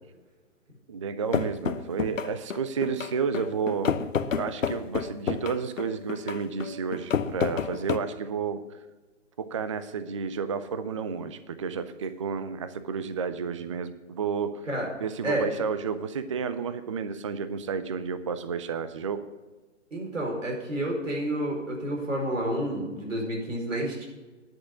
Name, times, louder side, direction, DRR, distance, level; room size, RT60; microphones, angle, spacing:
voice 1, 0.9-4.0 4.3-8.6 9.4-14.6 15.0-19.2, right 6 dB, 25° right, 12 dB, 0.4 m, -31 dB
sound 1, 1.3-8.0, left 6 dB, 85° left, 0.8 m, -30 dB
voice 2, 19.9-24.0, right 1 dB, 80° right, 0 dB, 4.7 m, -30 dB
10.5 x 6.3 x 8.1 m, 1.2 s
hypercardioid pair, 140°, 38 cm